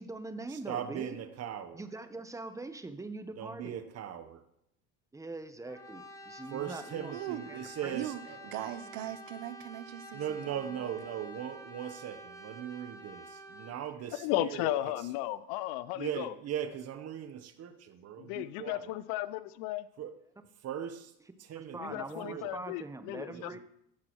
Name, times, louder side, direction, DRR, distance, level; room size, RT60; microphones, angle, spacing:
voice 1, 0.0-1.2 1.7-3.7 5.1-7.1 7.4-7.9 21.5-23.6, right 2 dB, 10° right, 0.8 m, -42 dB
voice 2, 0.5-1.8 3.4-4.4 6.5-8.4 10.1-14.8 16.0-18.9 20.0-20.1 20.6-21.1 21.5-22.5 23.3-23.6, right 9 dB, 45° right, 0.9 m, -39 dB
Brass instrument, 5.7-13.8, equal, 10° left, 1.2 m, -49 dB
voice 3, 7.1-10.9, right 12 dB, 70° right, 0.7 m, -41 dB
voice 4, 14.1-16.3 18.2-19.9 21.8-23.6, left 15 dB, 75° left, 0.5 m, -35 dB
14.0 x 6.0 x 3.0 m
supercardioid pair, 95°, 35 cm